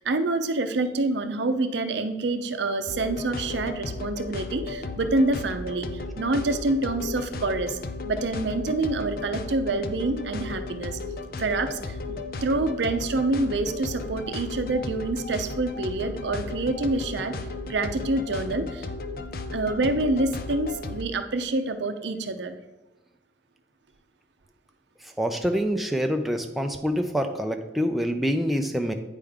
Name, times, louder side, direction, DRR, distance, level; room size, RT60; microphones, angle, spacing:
voice 1, 0.0-7.8 8.1-11.0 11.4-12.0 12.4-17.4 17.7-18.9 19.5-22.6, right 2 dB, 70° right, 8 dB, 0.6 m, -27 dB
sound 1, 2.9-21.0, left 3 dB, 50° left, 0.5 m, -35 dB
voice 2, 25.0-28.9, equal, ahead, 4 dB, 0.4 m, -26 dB
8.9 x 5.0 x 3.5 m, 1.1 s
head